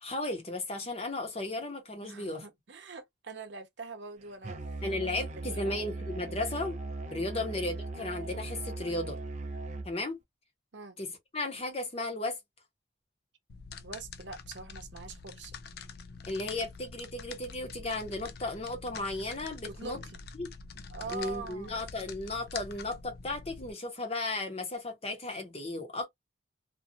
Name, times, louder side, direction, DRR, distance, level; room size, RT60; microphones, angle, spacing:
voice 1, 0.0-2.5 4.8-6.8 7.1-9.2 9.8-10.2 11.0-12.4 16.3-20.0 20.4-20.5 21.1-26.1, left 2 dB, 30° left, 0.8 m, -35 dB
voice 2, 2.0-5.0 5.4-5.8 7.3-7.4 10.7-11.0 13.8-15.5 19.7-20.2 20.9-21.8, right 3 dB, 70° right, 0.7 m, -44 dB
Musical instrument, 4.4-9.9, right 2 dB, 35° right, 0.4 m, -39 dB
sound 1, 13.5-23.7, left 5 dB, 55° left, 0.3 m, -46 dB
2.6 x 2.3 x 2.6 m
head